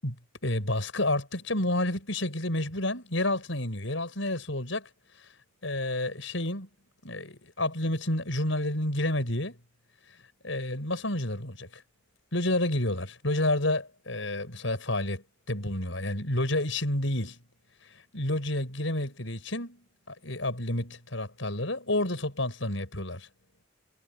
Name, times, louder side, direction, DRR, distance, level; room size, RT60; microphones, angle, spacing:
voice 1, 0.0-4.9 5.6-6.7 7.0-9.6 10.4-11.8 12.3-17.4 18.1-23.3, left 1 dB, 70° left, 6.9 m, -30 dB
head